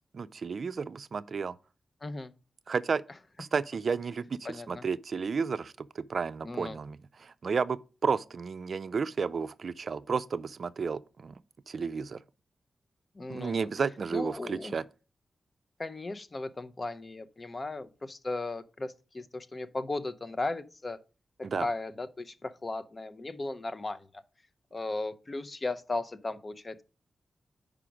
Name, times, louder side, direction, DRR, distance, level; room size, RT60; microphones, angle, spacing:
voice 1, 0.1-1.5 2.7-3.0 3.4-11.4 11.7-12.2 13.3-14.8 21.4-21.7, right 5 dB, 65° right, 0.3 m, -32 dB
voice 2, 2.0-2.3 4.4-4.8 6.4-6.8 13.1-13.7 14.1-14.7 15.8-21.0 21.4-24.2 24.7-26.8, left 2 dB, 40° left, 0.6 m, -36 dB
5.0 x 4.9 x 5.9 m
cardioid pair, 55°, 0 cm